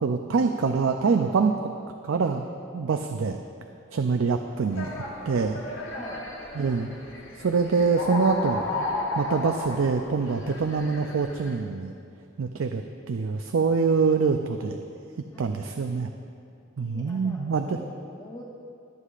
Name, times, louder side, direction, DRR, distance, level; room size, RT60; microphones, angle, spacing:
voice 1, 0.0-1.7 2.0-3.4 3.9-5.0 5.3-5.6 6.5-6.9 7.3-8.9 9.2-11.9 12.4-14.8 15.4-16.1 16.8-17.8, right 4 dB, 85° right, 5 dB, 0.5 m, -25 dB
sound 1, 4.7-11.5, left 2 dB, 75° left, 1.4 m, -34 dB
voice 2, 5.9-6.2 15.3-15.5 16.8-18.4, left 1 dB, 20° left, -3 dB, 0.8 m, -44 dB
24.0 x 8.2 x 2.5 m, 2.5 s
head